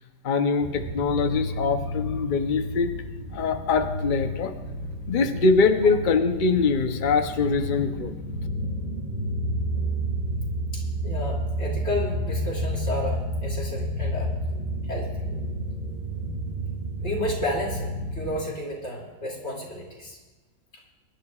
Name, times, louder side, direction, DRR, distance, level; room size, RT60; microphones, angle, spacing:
voice 1, 0.2-2.9 3.3-4.5 5.1-8.1, left 4 dB, 85° left, 6 dB, 0.4 m, -23 dB
sound 1, 0.6-18.4, equal, 25° right, 2.1 m, -30 dB
voice 2, 10.7-14.3 14.8-15.3 17.0-20.2, left 1 dB, 35° left, -3 dB, 3.0 m, -32 dB
23.0 x 11.5 x 2.4 m, 1.3 s
omnidirectional pair, 2.0 m